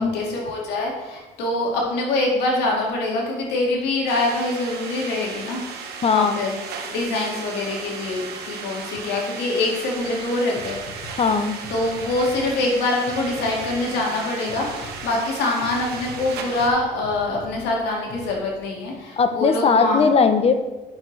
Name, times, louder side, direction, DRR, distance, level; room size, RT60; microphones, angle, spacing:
voice 1, 0.0-5.6 6.1-6.5 6.9-10.8 11.7-20.1, left 2 dB, 85° left, -1 dB, 1.9 m, -24 dB
sound 1, 4.1-16.7, right 5 dB, 70° right, 1.2 m, -35 dB
voice 2, 6.0-6.4 11.2-11.6 19.2-20.6, left 5 dB, 35° left, 10 dB, 0.6 m, -18 dB
sound 2, 10.0-10.2 10.6-12.7 13.1-15.2 15.6-17.7 18.1-18.3, left 2 dB, 65° left, 1.6 m, -42 dB
10.5 x 6.5 x 3.2 m, 1.1 s
cardioid pair, 110°, 17 cm